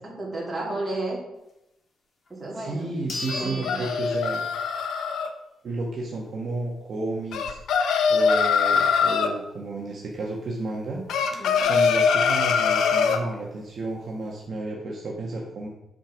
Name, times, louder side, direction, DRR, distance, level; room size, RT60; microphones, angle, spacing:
voice 1, 0.0-1.2 2.3-2.9 3.3-3.8 11.4-11.7, right 2 dB, 10° right, -4 dB, 2.9 m, -32 dB
sound 1, 2.3-2.4 3.1-4.8 5.2-5.3 9.9-10.0 10.3-10.4 10.9-11.4, left 2 dB, 40° left, 1.7 m, -37 dB
voice 2, 2.5-4.4 5.6-7.6 8.1-11.0 11.6-15.7, right 2 dB, 40° right, -3 dB, 1.3 m, -32 dB
sound 2, 3.3-5.3 7.3-9.3 11.1-13.2, left 6 dB, 75° left, 0.9 m, -22 dB
9.0 x 5.2 x 6.0 m, 0.89 s
cardioid pair, 160°, 0 cm